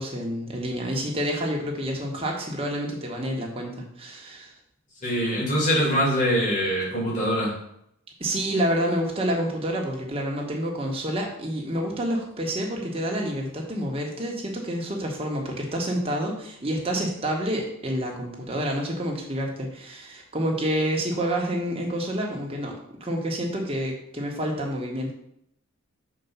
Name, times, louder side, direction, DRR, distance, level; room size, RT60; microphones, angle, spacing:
voice 1, 0.0-4.5 8.2-22.7 23.0-25.1, equal, 30° right, 0 dB, 1.3 m, -28 dB
voice 2, 5.0-7.5, equal, 35° left, -6 dB, 2.8 m, -23 dB
5.9 x 4.4 x 5.6 m, 0.74 s
head